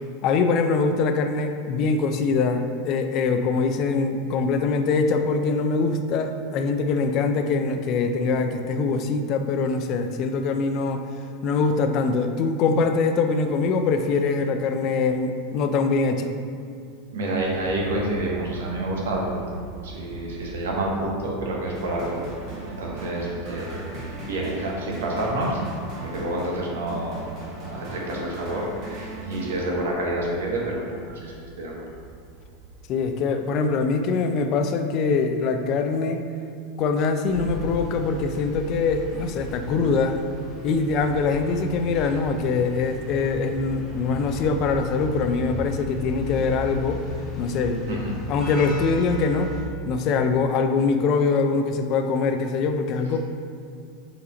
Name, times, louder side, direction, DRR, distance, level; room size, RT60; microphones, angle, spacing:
voice 1, 0.2-11.0 11.4-16.3 32.9-36.2 36.8-40.2 40.6-47.0 47.4-49.5 49.9-53.2, left 4 dB, 50° left, 7 dB, 0.4 m, -23 dB
voice 2, 17.1-19.5 19.8-25.6 26.0-32.0 47.9-48.1, right 1 dB, 85° right, -2 dB, 0.9 m, -29 dB
Aircraft, 17.3-33.5, right 4 dB, 70° right, 0.4 m, -43 dB
sound 1, 21.7-30.1, right 2 dB, 45° right, 1.4 m, -38 dB
sound 2, 37.3-49.6, left 1 dB, 25° left, 1.2 m, -36 dB
3.8 x 2.9 x 4.1 m, 2.3 s
supercardioid pair, 115°, 0 cm